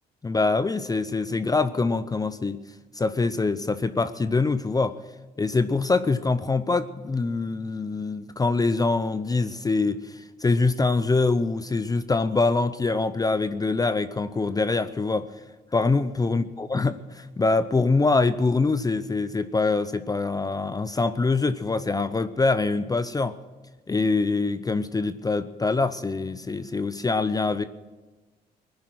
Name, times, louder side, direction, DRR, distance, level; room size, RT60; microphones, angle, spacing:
voice 1, 0.2-2.6 2.9-5.0 5.4-15.3 15.7-23.4 23.9-27.6, left 3 dB, 20° left, 13 dB, 0.6 m, -24 dB
20.0 x 10.5 x 6.3 m, 1.2 s
supercardioid pair, 75°, 18 cm